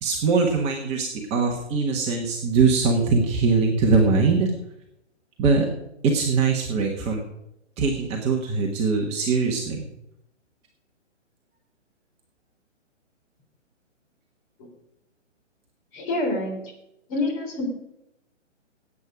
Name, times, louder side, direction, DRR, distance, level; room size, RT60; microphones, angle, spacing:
voice 1, 0.0-4.5 5.4-5.7 6.0-7.2 7.8-9.8, right 4 dB, 15° right, -1 dB, 1.4 m, -22 dB
voice 2, 15.9-16.6 17.1-17.6, left 2 dB, 30° left, 1 dB, 3.6 m, -27 dB
17.5 x 8.6 x 5.0 m, 0.85 s
figure-of-eight pair, 140°, 37 cm